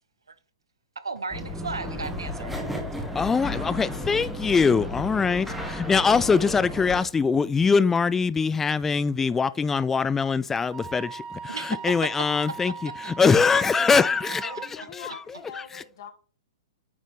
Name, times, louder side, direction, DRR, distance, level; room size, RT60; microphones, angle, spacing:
voice 1, 1.0-2.6 11.5-11.8 13.0-13.6, right 4 dB, 85° right, 0.7 m, -35 dB
sound 1, 1.3-7.0, left 1 dB, 5° right, 1.4 m, -33 dB
voice 2, 3.1-11.6 11.8-12.7 13.0-14.5, left 5 dB, 15° left, 0.4 m, -22 dB
Wind instrument woodwind instrument, 10.7-14.7, right 6 dB, 25° right, 1.5 m, -39 dB
voice 3, 14.4-16.1, left 7 dB, 60° left, 2.0 m, -42 dB
9.3 x 4.1 x 3.2 m
hypercardioid pair, 110°, 2 cm